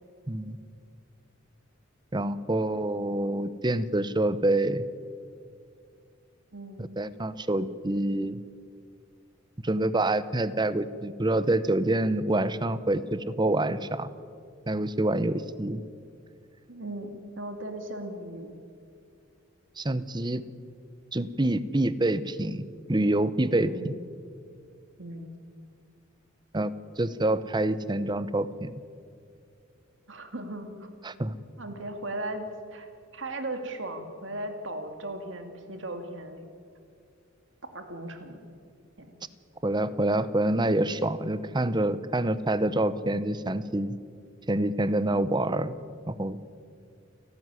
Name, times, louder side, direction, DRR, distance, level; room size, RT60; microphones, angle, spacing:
voice 1, 0.3-0.6 2.1-4.8 6.8-8.4 9.6-14.1 14.7-15.8 19.8-20.4 21.1-22.6 22.9-23.9 26.5-26.7 27.0-28.7 31.0-31.4 39.6-44.0 44.5-45.8 46.1-46.4, right 1 dB, 20° right, 15 dB, 0.8 m, -27 dB
voice 2, 6.5-6.9 16.7-18.6 23.7-23.9 25.0-25.3 30.1-30.9 31.6-36.5 37.7-38.4 39.0-39.2, right 1 dB, 65° right, 6 dB, 2.4 m, -37 dB
29.5 x 12.5 x 9.7 m, 2.4 s
head